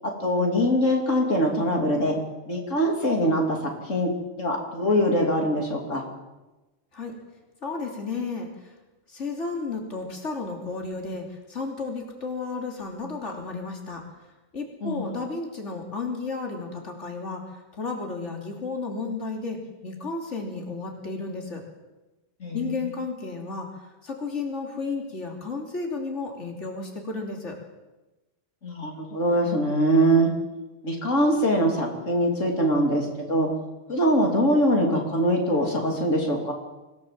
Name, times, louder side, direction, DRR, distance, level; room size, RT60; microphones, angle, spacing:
voice 1, 0.2-2.2 2.5-4.1 4.4-6.0 14.8-15.1 22.4-22.7 28.6-30.3 30.8-33.5 33.9-36.5, equal, 85° left, 1 dB, 3.5 m, -23 dB
voice 2, 7.6-8.7 9.1-14.1 14.5-21.6 22.5-27.6, left 4 dB, 70° left, 1 dB, 3.5 m, -33 dB
25.5 x 17.0 x 7.6 m, 1.1 s
omnidirectional pair, 1.3 m